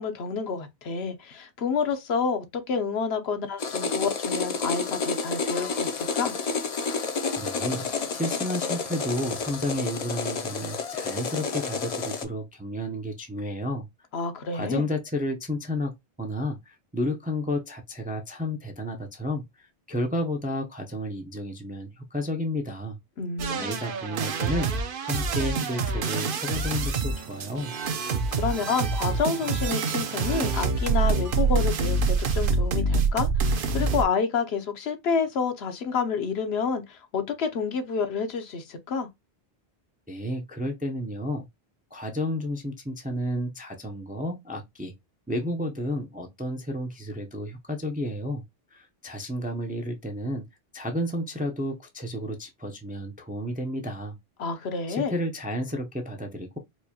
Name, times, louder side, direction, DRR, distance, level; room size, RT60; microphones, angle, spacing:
voice 1, 0.0-6.4 14.1-14.8 23.2-23.8 28.3-39.1 54.4-55.1, left 5 dB, 80° left, 1.0 m, -29 dB
sound 1, 3.6-12.2, left 4 dB, 50° left, 0.5 m, -30 dB
voice 2, 7.4-13.9 14.5-23.0 23.5-24.7 25.0-27.7 40.1-41.5 41.9-44.9 45.3-48.4 48.7-50.5 50.7-54.2 54.9-56.6, left 1 dB, 15° right, 0.3 m, -31 dB
sound 2, 23.4-34.0, right 4 dB, 60° right, 0.8 m, -26 dB
4.5 x 2.2 x 2.8 m
omnidirectional pair, 1.1 m